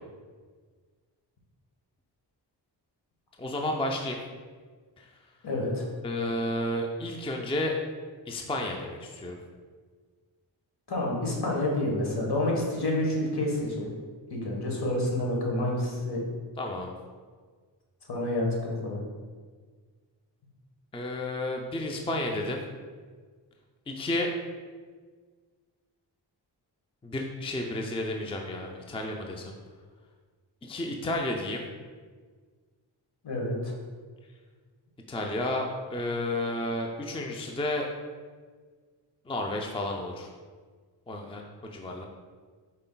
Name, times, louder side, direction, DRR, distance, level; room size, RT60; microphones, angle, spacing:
voice 1, 3.4-4.2 5.0-5.1 6.0-7.8 8.3-9.4 16.6-16.9 20.9-22.6 23.9-24.3 27.0-29.5 30.6-31.7 35.1-37.9 39.3-40.3 41.1-42.1, left 1 dB, 15° left, 1 dB, 0.5 m, -31 dB
voice 2, 5.4-5.9 10.9-13.9 14.3-16.2 18.1-19.0 33.2-33.7, left 1 dB, 60° left, -2 dB, 1.4 m, -28 dB
5.3 x 4.2 x 2.3 m, 1.6 s
cardioid pair, 55°, 43 cm